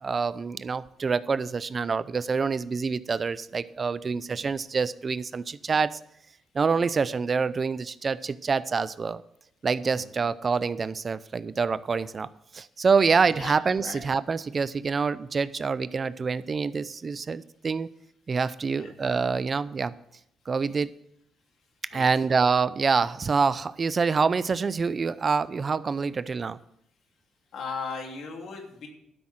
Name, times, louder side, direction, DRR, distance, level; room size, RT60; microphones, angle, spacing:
voice 1, 0.0-6.0 6.5-9.2 9.6-12.3 12.5-17.9 18.3-19.9 20.5-20.9 21.9-26.6, right 5 dB, 40° right, 16 dB, 0.5 m, -26 dB
voice 2, 27.5-28.9, left 5 dB, 65° left, 2 dB, 2.9 m, -37 dB
12.5 x 6.2 x 7.5 m, 0.73 s
cardioid pair, 90°, 0 cm